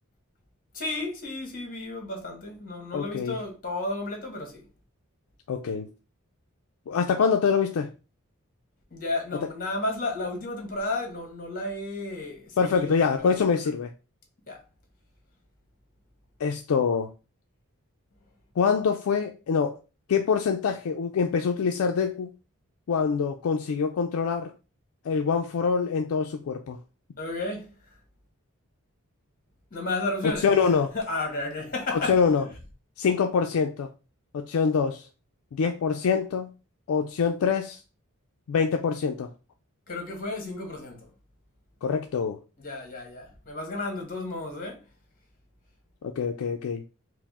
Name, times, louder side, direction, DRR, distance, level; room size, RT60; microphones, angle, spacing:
voice 1, 0.7-4.7 8.9-13.3 14.5-14.6 27.2-27.7 29.7-30.6 30.9-32.5 39.9-41.1 42.6-44.8, left 2 dB, 40° left, 1.2 m, -33 dB
voice 2, 2.9-3.3 5.5-5.9 6.9-7.9 12.6-13.9 16.4-17.1 18.6-19.8 20.1-22.3 22.9-24.5 25.1-26.8 30.2-30.9 31.9-32.5 33.0-33.9 34.3-35.1 35.5-36.5 36.9-37.8 38.5-39.3 41.8-42.4 46.0-46.8, left 6 dB, 70° left, 0.4 m, -25 dB
4.7 x 2.0 x 3.5 m
head